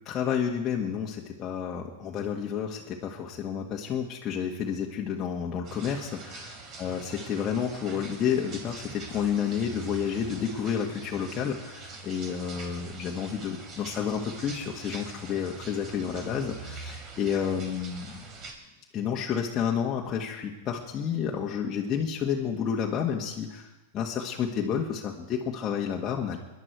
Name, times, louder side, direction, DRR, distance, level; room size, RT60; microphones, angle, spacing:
voice 1, 0.0-18.3 18.9-26.4, left 7 dB, 30° left, -1 dB, 1.7 m, -30 dB
sound 1, 5.6-18.5, right 4 dB, 35° right, 3.6 m, -43 dB
22.0 x 11.0 x 4.7 m, 1.1 s
hypercardioid pair, 105°, 0 cm